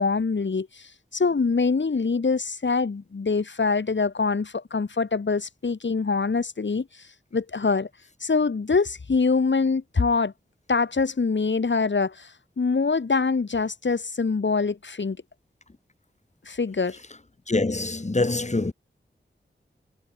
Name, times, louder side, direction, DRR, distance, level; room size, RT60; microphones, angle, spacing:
voice 1, 0.0-7.9 8.2-10.3 10.7-15.2 16.5-17.0, left 4 dB, 75° left, 4.4 m, -24 dB
voice 2, 17.5-18.7, left 2 dB, 35° left, 6.8 m, -24 dB
wide cardioid pair, 80°, 19 cm